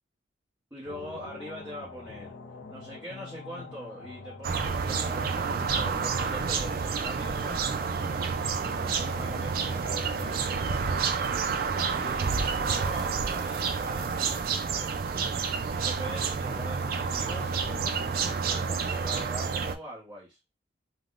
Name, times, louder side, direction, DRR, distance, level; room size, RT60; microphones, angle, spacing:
voice 1, 0.7-2.3 2.7-8.3 8.8-10.9 11.9-15.0 15.7-20.4, equal, 10° right, 0.8 m, -43 dB
sound 1, 0.8-18.3, left 3 dB, 60° left, 0.5 m, -46 dB
sound 2, 4.4-19.7, right 5 dB, 50° right, 0.3 m, -29 dB
3.4 x 2.1 x 2.4 m
head